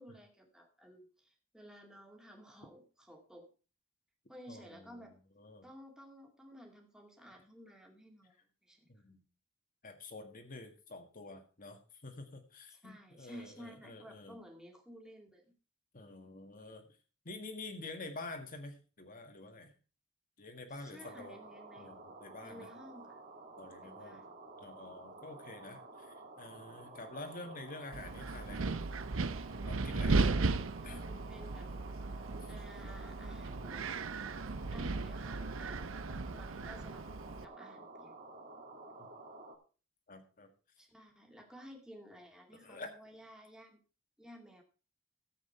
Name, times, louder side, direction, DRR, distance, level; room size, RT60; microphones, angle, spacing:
voice 1, 0.0-3.5 4.3-5.2 5.6-8.4 8.6-8.9 12.7-15.4 20.7-21.9 22.4-23.2 23.8-24.3 30.2-30.4 30.8-31.7 32.5-33.8 34.7-37.0 37.4-38.1 40.8-43.8 44.2-44.6, equal, 5° right, 1 dB, 2.3 m, -54 dB
voice 2, 4.5-5.7 8.9-9.2 9.8-14.4 15.9-16.9 17.3-19.8 20.4-21.4 21.8-22.7 23.6-24.2 24.6-28.7 29.7-30.2 30.8-31.0 32.5-32.6 39.0-39.1 40.1-40.5 42.6-42.9, left 2 dB, 45° left, 5 dB, 1.8 m, -48 dB
sound 1, 21.0-39.6, right 2 dB, 40° right, 2.6 m, -52 dB
Wind, 27.9-37.4, right 3 dB, 90° right, 0.7 m, -36 dB
14.0 x 7.8 x 4.5 m, 0.35 s
head